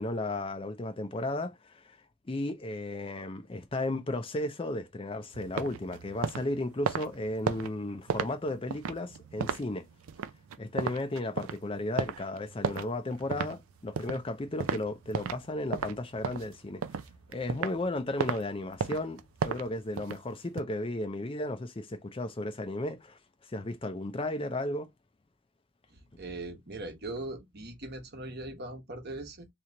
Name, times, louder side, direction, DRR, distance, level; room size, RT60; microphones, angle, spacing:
voice 1, 0.0-2.0 2.3-9.8 10.6-16.8 17.3-23.2 23.5-24.9, left 2 dB, 25° left, 0.5 m, -34 dB
sound 1, 5.3-15.5 15.7-17.8 18.2-18.4 18.8-20.6, right 6 dB, 80° right, 0.4 m, -34 dB
voice 2, 25.9-29.5, right 2 dB, 50° right, 1.0 m, -40 dB
3.4 x 3.0 x 3.8 m
head